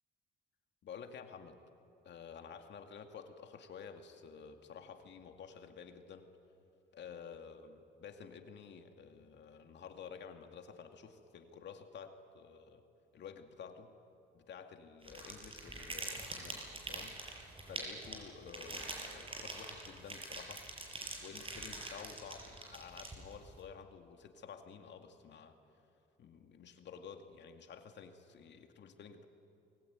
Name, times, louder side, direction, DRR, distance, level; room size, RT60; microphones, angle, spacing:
voice 1, 0.8-1.6 2.0-6.3 6.9-12.8 13.1-13.9 14.3-17.2 17.6-20.7 21.2-25.6 26.2-29.2, left 6 dB, 65° left, 5 dB, 2.3 m, -51 dB
sound 1, 15.0-23.5, right 2 dB, 25° right, 6.8 m, -45 dB
29.5 x 21.5 x 9.4 m, 2.7 s
cardioid pair, 90°, 20 cm